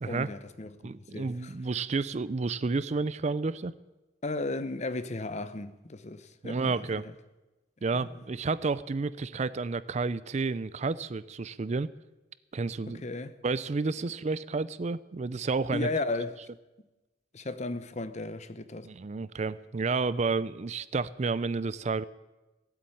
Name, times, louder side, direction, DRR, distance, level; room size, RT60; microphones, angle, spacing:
voice 1, 0.0-0.8 1.1-1.5 4.2-6.8 7.0-7.1 7.9-8.2 13.0-13.3 15.7-16.5 17.3-18.9, left 2 dB, 35° left, 0.8 m, -35 dB
voice 2, 0.8-3.7 6.4-7.1 7.8-11.9 12.5-13.0 13.4-15.9 18.8-22.0, right 4 dB, 35° right, 0.4 m, -30 dB
16.5 x 8.6 x 9.0 m
head